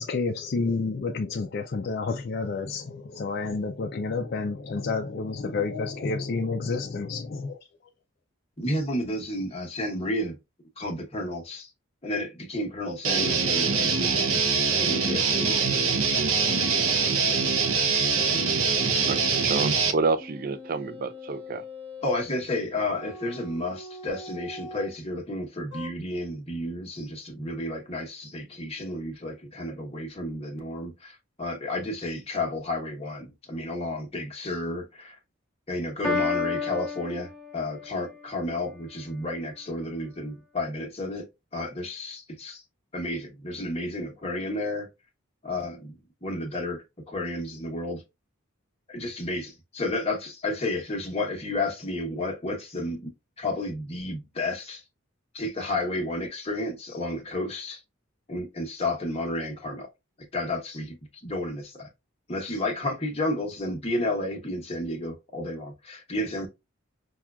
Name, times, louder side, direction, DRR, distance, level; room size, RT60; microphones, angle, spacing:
voice 1, 0.0-7.6, left 4 dB, 45° left, 0.3 m, -30 dB
voice 2, 8.6-10.4 10.8-11.7 12.0-15.6 22.0-35.2 35.7-41.3 41.5-42.6 42.9-44.9 45.4-45.9 46.2-48.0 48.9-54.8 55.3-57.8 58.3-59.9 60.3-61.0 61.2-61.9 62.3-66.5, left 1 dB, 30° left, 0.9 m, -32 dB
Guitar, 13.0-19.9, right 5 dB, 85° right, 0.7 m, -24 dB
voice 3, 19.1-21.6, right 4 dB, 40° right, 0.3 m, -29 dB
sound 1, 20.2-22.2 22.9-24.9 25.7-25.9, left 2 dB, 25° right, 0.9 m, -42 dB
Piano, 36.0-38.0, left 4 dB, 5° left, 1.1 m, -30 dB
5.8 x 2.3 x 2.3 m
head